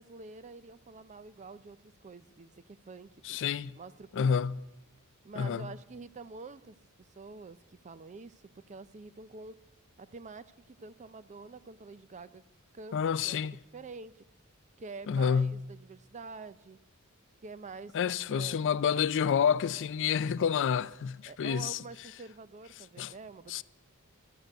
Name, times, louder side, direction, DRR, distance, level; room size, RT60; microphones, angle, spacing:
voice 1, 0.0-3.4 3.8-4.3 5.2-6.8 7.1-9.6 10.0-12.4 12.7-13.4 13.7-14.1 14.8-16.8 17.4-18.7 21.3-23.6, right 4 dB, 30° right, 0.5 m, -47 dB
voice 2, 3.2-3.8 4.1-4.6 5.4-5.7 12.9-13.6 15.1-15.6 17.9-21.8 23.0-23.1 23.5-23.6, left 7 dB, 55° left, 0.4 m, -29 dB
12.5 x 9.0 x 8.0 m
head